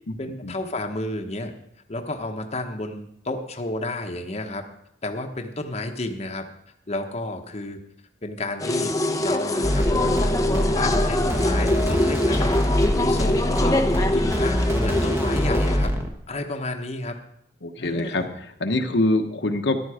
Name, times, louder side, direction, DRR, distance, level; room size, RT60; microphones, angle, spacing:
voice 1, 0.2-1.5 1.9-4.6 5.0-6.5 6.9-7.8 8.2-12.5 12.9-15.9 16.3-17.2 17.8-18.4, left 2 dB, 35° left, 4 dB, 1.1 m, -31 dB
sound 1, 8.6-15.8, left 1 dB, 20° left, 0.9 m, -24 dB
sound 2, 9.6-16.1, equal, 15° right, 1.3 m, -24 dB
voice 2, 17.6-19.8, left 2 dB, 75° left, 5 dB, 1.2 m, -24 dB
14.0 x 11.0 x 5.0 m, 0.76 s
head